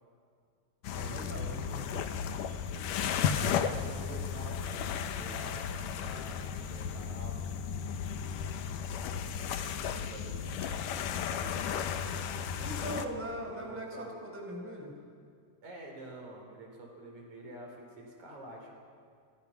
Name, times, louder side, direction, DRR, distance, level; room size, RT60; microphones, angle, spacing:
sound 1, 0.8-13.1, left 7 dB, 90° left, 2.7 m, -34 dB
voice 1, 0.9-1.9 12.6-15.0, right 1 dB, 5° right, 1 dB, 4.4 m, -40 dB
voice 2, 2.7-3.2 3.5-8.6 9.7-14.1 15.6-18.8, right 1 dB, 65° right, 1 dB, 5.7 m, -49 dB
30.0 x 25.0 x 5.9 m, 2.2 s
omnidirectional pair, 3.6 m